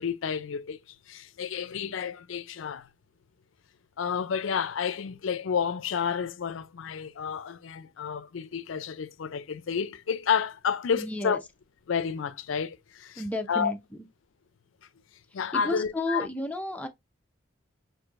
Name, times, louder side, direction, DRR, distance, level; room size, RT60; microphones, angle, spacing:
voice 1, 0.0-2.9 4.0-11.4 11.9-13.2 13.5-13.7 15.3-16.3, left 6 dB, 90° left, 0.4 m, -30 dB
voice 2, 10.9-11.4 13.2-13.8 15.5-16.9, left 1 dB, 5° left, 0.6 m, -32 dB
6.1 x 2.6 x 2.5 m
head